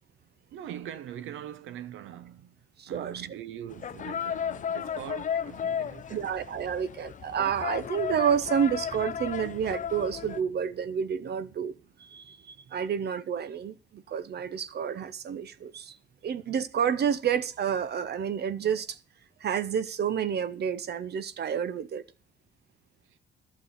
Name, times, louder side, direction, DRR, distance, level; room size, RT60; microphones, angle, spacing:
voice 1, 0.5-2.6 2.9-6.3, right 10 dB, 85° right, 0.9 m, -42 dB
voice 2, 2.8-3.3 6.1-11.7 12.0-16.0 16.2-19.0 19.4-22.0, right 8 dB, 55° right, 0.8 m, -29 dB
sound 1, 3.7-10.4, left 8 dB, 40° left, 0.5 m, -34 dB
11.5 x 6.0 x 8.0 m
cardioid pair, 90°, 20 cm